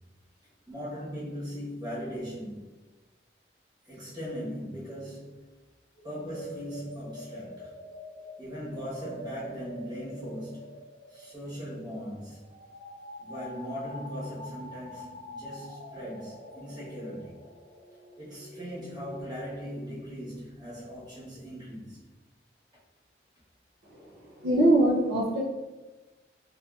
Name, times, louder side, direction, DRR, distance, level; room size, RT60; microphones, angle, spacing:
voice 1, 0.7-2.6 3.9-5.4 6.0-7.7 8.4-12.4 13.2-17.4 18.2-22.0, equal, 25° right, -8 dB, 1.0 m, -39 dB
sound 1, 5.9-19.2, left 1 dB, 45° left, 0.6 m, -46 dB
voice 2, 23.8-25.4, right 1 dB, 65° right, -3 dB, 0.5 m, -24 dB
3.7 x 2.5 x 2.3 m, 1.2 s
head